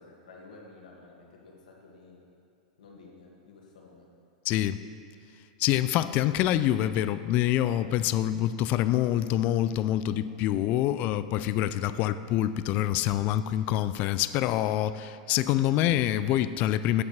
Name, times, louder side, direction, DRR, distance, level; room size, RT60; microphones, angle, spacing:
voice 1, 0.0-2.3 2.8-4.1, left 3 dB, 85° left, -1 dB, 1.7 m, -51 dB
voice 2, 4.5-4.8 5.6-17.0, left 12 dB, 40° left, 14 dB, 0.3 m, -26 dB
8.4 x 7.1 x 4.7 m, 2.5 s
hypercardioid pair, 125°, 4 cm